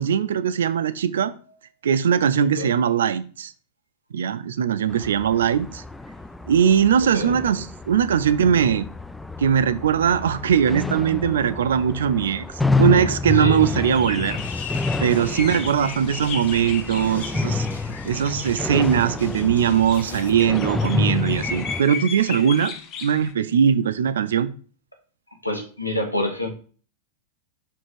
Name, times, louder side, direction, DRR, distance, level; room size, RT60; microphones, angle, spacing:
voice 1, 0.0-1.3 1.8-3.5 4.1-5.8 6.5-8.9 9.4-12.5 12.8-14.4 15.0-17.7 18.0-22.7 23.0-24.5, right 8 dB, 65° right, 0.5 m, -20 dB
sound 1, 4.9-21.8, left 3 dB, 5° left, 0.3 m, -28 dB
sound 2, 13.5-23.3, left 6 dB, 35° left, 0.9 m, -36 dB
sound 3, 14.4-20.3, left 3 dB, 70° left, 1.2 m, -42 dB
voice 2, 25.4-26.5, left 1 dB, 85° left, 1.5 m, -27 dB
5.9 x 4.6 x 4.1 m
figure-of-eight pair, 90°, 0 cm